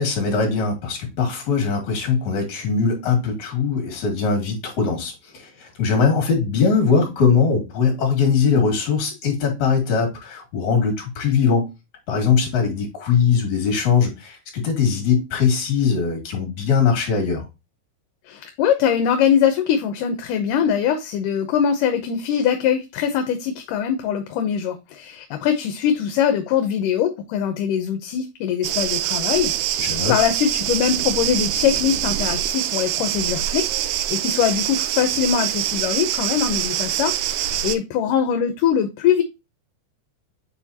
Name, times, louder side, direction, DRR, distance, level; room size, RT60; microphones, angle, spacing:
voice 1, 0.0-11.7 12.1-17.5 29.8-30.1, left 5 dB, 60° left, 3.4 m, -21 dB
voice 2, 18.3-39.2, left 8 dB, 80° left, 2.3 m, -22 dB
sound 1, 28.6-37.8, right 12 dB, 80° right, 2.1 m, -24 dB
7.9 x 4.6 x 2.8 m
omnidirectional pair, 3.8 m